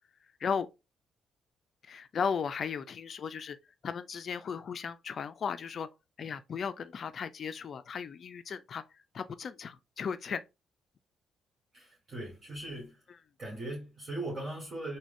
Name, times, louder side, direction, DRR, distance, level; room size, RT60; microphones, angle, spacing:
voice 1, 1.8-3.6 3.8-5.9 6.2-8.8 9.1-10.4 13.1-13.2, left 6 dB, 50° left, 0.3 m, -36 dB
voice 2, 11.7-13.0 13.4-15.0, right 1 dB, 40° right, 1.4 m, -39 dB
3.6 x 2.2 x 3.4 m
cardioid pair, 90°, 0 cm